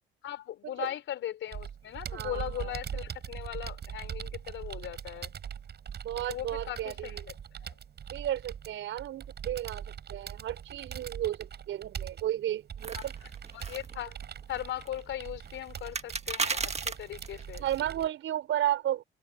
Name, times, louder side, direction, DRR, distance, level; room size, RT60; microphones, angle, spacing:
voice 1, 0.2-5.3 6.3-7.3 7.6-7.8 12.9-14.2 14.5-17.6, left 12 dB, 80° left, 5.0 m, -39 dB
Computer keyboard, 1.5-18.1, right 8 dB, 55° right, 6.5 m, -42 dB
voice 2, 2.1-2.7 6.0-7.2 8.1-13.1 17.6-19.0, right 12 dB, 80° right, 5.3 m, -33 dB
sound 1, 12.8-17.8, right 5 dB, 35° right, 1.6 m, -37 dB
cardioid pair, 90°, 20 cm